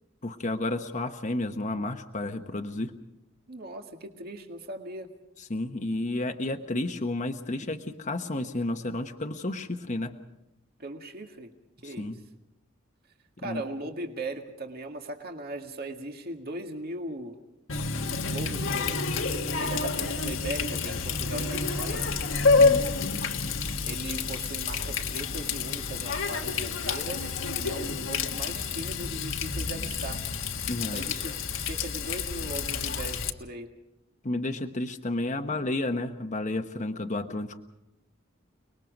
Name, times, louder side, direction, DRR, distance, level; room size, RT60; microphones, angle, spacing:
voice 1, 0.2-2.9 5.4-10.1 11.8-12.2 13.4-13.6 22.4-23.4 30.7-31.3 34.2-37.6, left 2 dB, 40° left, 4 dB, 1.1 m, -32 dB
voice 2, 3.5-5.1 10.8-11.5 11.8-12.2 13.4-17.4 18.3-19.1 19.6-22.1 23.8-27.3 27.6-30.2 30.9-33.7, right 2 dB, 50° right, 4 dB, 1.9 m, -38 dB
Water tap faucet, 17.7-33.3, left 4 dB, 75° left, 1.6 m, -28 dB
30.0 x 20.5 x 5.3 m, 0.89 s
head